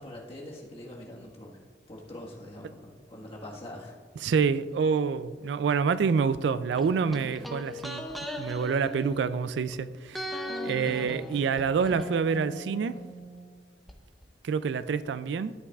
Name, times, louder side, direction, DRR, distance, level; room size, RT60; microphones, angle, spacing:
voice 1, 0.0-1.6 1.9-4.0 10.7-11.0, left 1 dB, 35° left, 1.5 m, -44 dB
voice 2, 4.2-8.1 8.4-10.3 10.6-13.0 14.4-15.5, right 5 dB, 65° right, 0.3 m, -27 dB
sound 1, 6.8-9.7 10.1-14.0 14.2-14.3, equal, ahead, 0.7 m, -39 dB
13.0 x 8.4 x 2.4 m
head